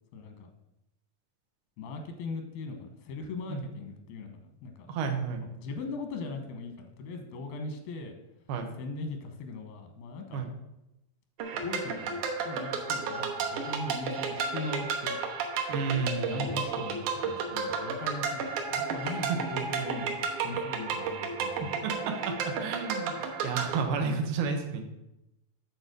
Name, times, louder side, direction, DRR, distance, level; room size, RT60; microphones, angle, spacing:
voice 1, 0.1-0.5 1.8-4.3 4.6-4.9 5.4-8.1 8.8-10.5 11.5-15.2 16.2-18.4 18.7-21.7, left 3 dB, 90° left, 6 dB, 2.9 m, -39 dB
voice 2, 4.9-5.4 8.5-8.7 10.3-10.5 15.7-16.6 19.3-19.4 21.6-24.8, right 5 dB, 90° right, 5 dB, 2.9 m, -32 dB
sound 1, 11.4-23.8, right 5 dB, 70° right, 2.2 m, -32 dB
8.8 x 4.2 x 6.6 m, 0.89 s
omnidirectional pair, 4.3 m